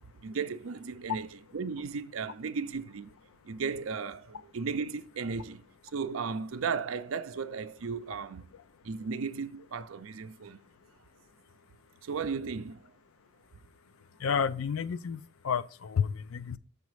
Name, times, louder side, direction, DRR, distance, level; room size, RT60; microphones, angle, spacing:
voice 1, 0.2-3.2 3.4-5.7 5.9-8.5 8.8-10.6 12.0-12.9, right 5 dB, 80° right, 0.5 m, -35 dB
voice 2, 14.2-16.6, left 7 dB, 90° left, 0.4 m, -31 dB
6.9 x 4.0 x 4.8 m
head